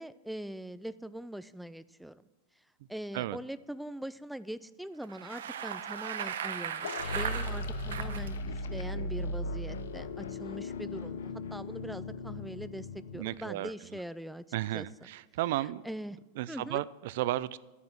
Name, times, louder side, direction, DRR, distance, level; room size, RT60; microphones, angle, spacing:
voice 1, 0.0-2.2 2.9-14.4 14.7-14.9 15.6-16.2 16.5-16.8, right 1 dB, ahead, 14 dB, 0.4 m, -42 dB
Bicycle, 5.0-8.3, right 8 dB, 85° right, 1.0 m, -37 dB
sound 1, 6.5-10.9, left 6 dB, 65° left, 2.7 m, -49 dB
sound 2, 6.8-13.5, left 2 dB, 90° left, 0.9 m, -37 dB
voice 2, 13.1-13.7 14.5-15.8 16.4-17.6, right 15 dB, 65° right, 18 dB, 0.5 m, -33 dB
11.5 x 9.5 x 6.0 m, 1.1 s
supercardioid pair, 125°, 0 cm